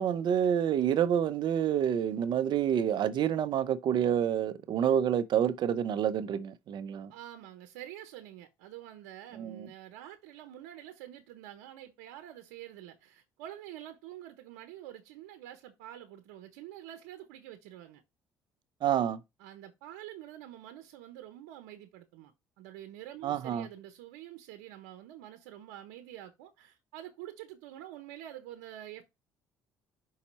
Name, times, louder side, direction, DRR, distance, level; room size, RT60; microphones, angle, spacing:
voice 1, 0.0-7.1 9.3-9.7 18.8-19.2 23.2-23.7, right 9 dB, 60° right, 0.8 m, -28 dB
voice 2, 7.1-18.0 19.4-29.0, right 12 dB, 85° right, 1.0 m, -47 dB
5.7 x 4.2 x 5.4 m
supercardioid pair, 65°, 9 cm